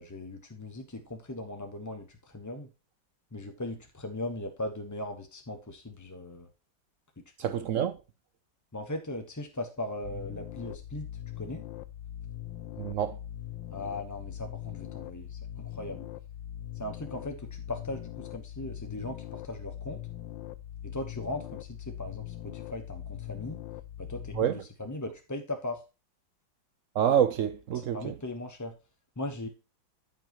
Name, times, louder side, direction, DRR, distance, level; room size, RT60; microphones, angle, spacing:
voice 1, 0.0-2.7 3.3-6.5 7.2-7.7 8.7-11.1 11.4-11.6 13.7-16.1 16.8-20.0 20.8-23.6 24.0-25.8 27.7-28.8 29.2-29.5, left 1 dB, 15° left, 0.5 m, -38 dB
voice 2, 7.4-8.0 12.8-13.2 24.3-24.6 26.9-28.1, right 9 dB, 75° right, 0.7 m, -27 dB
sound 1, 10.0-24.4, left 11 dB, 80° left, 1.4 m, -41 dB
13.5 x 5.6 x 3.0 m
omnidirectional pair, 2.1 m